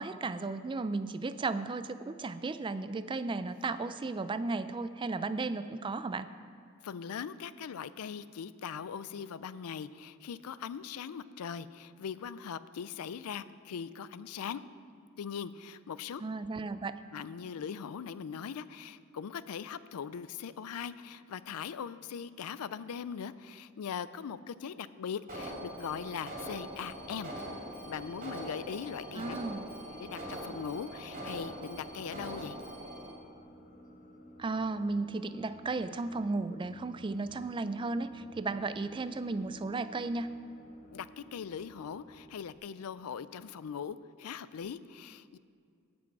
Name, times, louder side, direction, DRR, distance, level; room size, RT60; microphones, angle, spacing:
voice 1, 0.0-6.3 16.2-17.0 29.2-29.7 34.4-40.3, right 3 dB, 20° right, 13 dB, 0.3 m, -34 dB
voice 2, 6.8-14.6 15.2-16.2 17.1-27.4 27.8-29.4 30.0-32.6 40.9-45.4, left 7 dB, 85° left, 16 dB, 0.4 m, -40 dB
sound 1, 25.3-42.6, equal, 35° left, 0.9 m, -55 dB
Alarm, 25.3-33.1, right 1 dB, 40° right, 2.6 m, -42 dB
18.0 x 6.2 x 4.7 m, 2.3 s
head